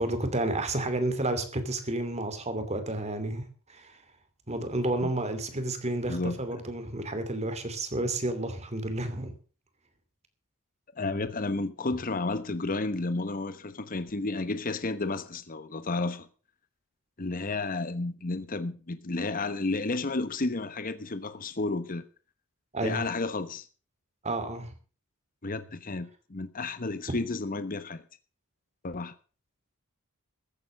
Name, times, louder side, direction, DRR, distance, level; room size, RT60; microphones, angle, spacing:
voice 1, 0.0-4.0 4.5-9.3 22.7-23.0 24.2-24.7, right 2 dB, 30° right, 2.7 m, -31 dB
voice 2, 11.0-16.3 17.2-22.0 22.8-23.7 25.4-28.0 28.8-29.1, left 3 dB, 40° left, 1.0 m, -32 dB
15.0 x 8.7 x 6.5 m
head